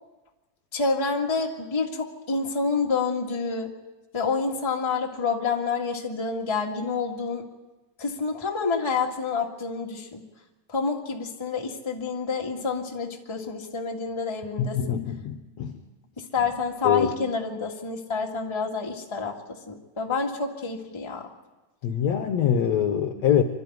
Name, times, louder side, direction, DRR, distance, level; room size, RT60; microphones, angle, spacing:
voice 1, 0.7-3.7 4.1-7.4 8.0-10.2 10.7-15.0 16.2-21.3, left 4 dB, 15° left, 0 dB, 1.0 m, -28 dB
voice 2, 14.6-15.8 16.8-17.1 21.8-23.4, left 9 dB, 65° left, 7 dB, 1.9 m, -24 dB
25.5 x 13.0 x 9.3 m, 1.1 s
omnidirectional pair, 3.9 m